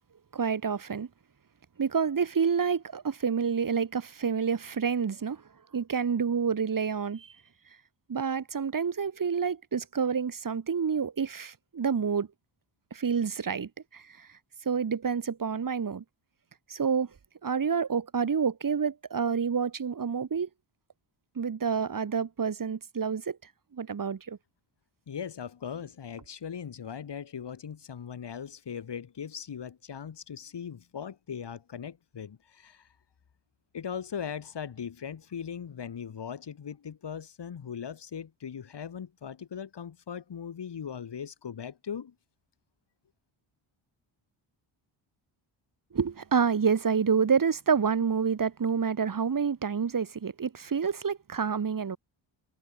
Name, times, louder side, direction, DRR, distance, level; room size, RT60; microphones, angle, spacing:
voice 1, 0.3-1.1 1.8-5.4 5.7-7.3 8.1-12.3 12.9-14.3 14.6-16.0 16.7-17.1 17.4-20.5 21.3-23.4 23.7-24.4 45.9-52.0, right 6 dB, 40° right, 3.4 m, -28 dB
voice 2, 25.1-32.9 33.7-42.1, left 7 dB, 55° left, 7.6 m, -39 dB
cardioid pair, 110°, 50 cm